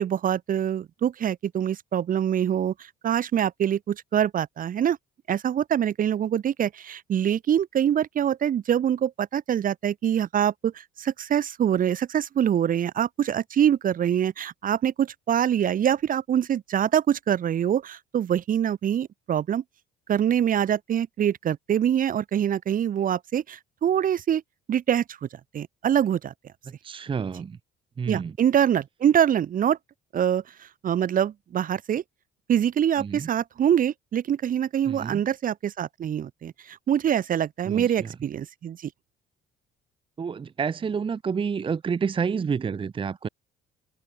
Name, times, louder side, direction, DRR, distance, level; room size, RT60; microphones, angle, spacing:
voice 1, 0.0-2.7 3.0-5.0 5.3-19.6 20.1-24.4 24.7-25.3 25.5-26.3 28.1-29.8 30.1-30.4 30.8-32.0 32.5-38.9, right 9 dB, 45° right, 1.3 m, -24 dB
voice 2, 26.8-27.6 28.0-28.4 33.0-33.3 34.9-35.2 37.6-38.1 40.2-43.3, right 6 dB, 25° right, 0.8 m, -29 dB
cardioid pair, 105°, 19 cm